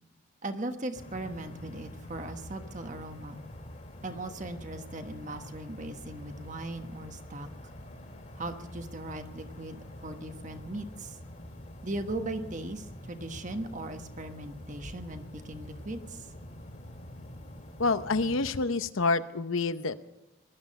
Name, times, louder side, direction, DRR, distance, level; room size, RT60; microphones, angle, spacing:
voice 1, 0.4-3.4 4.0-7.5 8.4-11.2 11.8-16.3, right 2 dB, 35° right, 7 dB, 1.2 m, -38 dB
sound 1, 0.9-18.6, left 1 dB, 35° left, 2.4 m, -46 dB
voice 2, 17.8-20.0, left 3 dB, 75° left, 12 dB, 0.8 m, -28 dB
20.5 x 12.0 x 5.3 m, 1.0 s
head